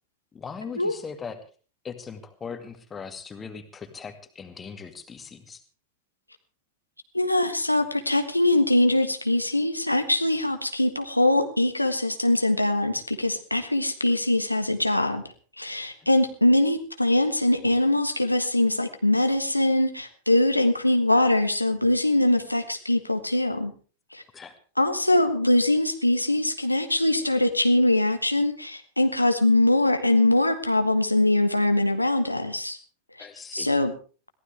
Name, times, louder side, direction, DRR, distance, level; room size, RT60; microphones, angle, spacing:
voice 1, 0.3-1.4 1.8-5.6 24.3-24.5 33.2-33.7, left 6 dB, 20° left, 7 dB, 2.2 m, -39 dB
voice 2, 7.1-15.2 15.6-23.7 24.1-24.2 24.8-32.8 33.5-33.9, left 1 dB, 85° left, 7 dB, 1.3 m, -22 dB
22.0 x 15.5 x 3.4 m, 0.37 s
figure-of-eight pair, 90°, 0 cm